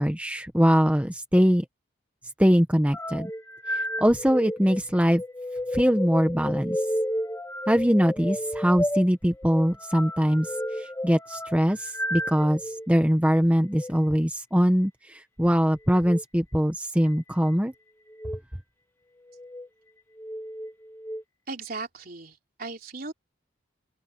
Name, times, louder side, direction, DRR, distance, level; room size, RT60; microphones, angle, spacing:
voice 1, 0.0-1.6 2.4-3.3 3.7-5.2 5.7-6.8 7.7-10.5 10.8-17.7, equal, 5° right, 1.2 m, -22 dB
sound 1, 2.9-12.9 13.6-13.9 15.9-16.2 17.0-17.6 18.1-18.4 19.2-19.7 20.2-21.2, equal, 10° left, 2.7 m, -32 dB
voice 2, 21.5-23.1, right 3 dB, 50° right, 3.6 m, -37 dB
open air
head